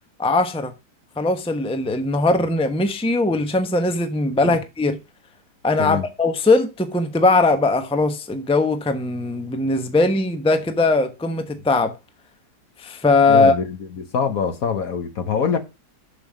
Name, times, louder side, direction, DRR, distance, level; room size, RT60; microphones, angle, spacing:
voice 1, 0.2-0.7 1.2-5.0 5.6-11.9 12.8-13.5, left 3 dB, 5° left, 0.8 m, -20 dB
voice 2, 13.3-15.6, left 6 dB, 60° left, 1.6 m, -24 dB
7.3 x 7.0 x 5.0 m
omnidirectional pair, 1.8 m